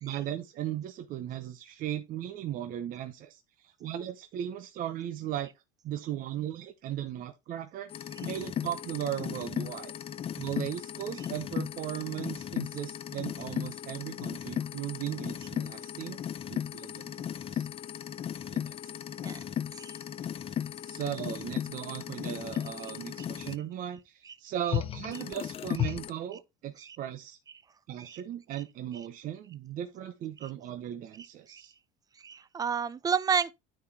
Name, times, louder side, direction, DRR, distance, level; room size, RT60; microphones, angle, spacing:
voice 1, 0.0-5.5 5.8-9.9 10.4-16.2 16.5-17.1 17.5-17.7 18.5-19.0 20.8-27.4 27.9-31.7, right 11 dB, 45° right, 0.8 m, -37 dB
sound 1, 7.9-23.5 24.7-26.1, left 10 dB, 30° left, 0.6 m, -36 dB
voice 2, 32.2-33.5, right 6 dB, 20° right, 0.5 m, -29 dB
9.4 x 4.1 x 4.2 m
supercardioid pair, 120°, 19 cm